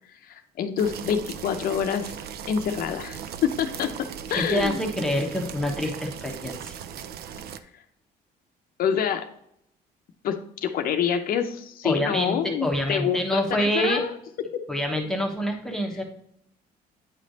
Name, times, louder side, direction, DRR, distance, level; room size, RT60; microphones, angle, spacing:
voice 1, 0.1-2.2 2.5-3.9 4.3-4.8 8.8-9.2 10.2-14.1 14.5-14.6, left 8 dB, 60° left, 6 dB, 0.6 m, -27 dB
sound 1, 0.8-7.6, right 8 dB, 70° right, 0.5 m, -38 dB
voice 2, 4.3-6.8 11.8-14.0 14.7-16.0, equal, 5° left, 2 dB, 1.0 m, -26 dB
9.0 x 3.3 x 3.9 m, 0.73 s
cardioid pair, 110°, 17 cm